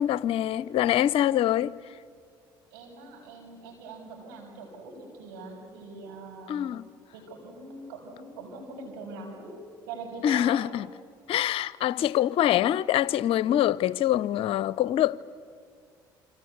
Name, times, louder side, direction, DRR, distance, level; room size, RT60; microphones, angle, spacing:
voice 1, 0.0-1.7 6.5-6.8 10.2-10.9 11.3-15.2, left 12 dB, 60° left, 0.7 m, -24 dB
voice 2, 2.7-6.7 7.1-9.6 9.9-10.8, right 3 dB, 85° right, 6.2 m, -42 dB
27.5 x 26.0 x 8.0 m
hypercardioid pair, 60°, 11 cm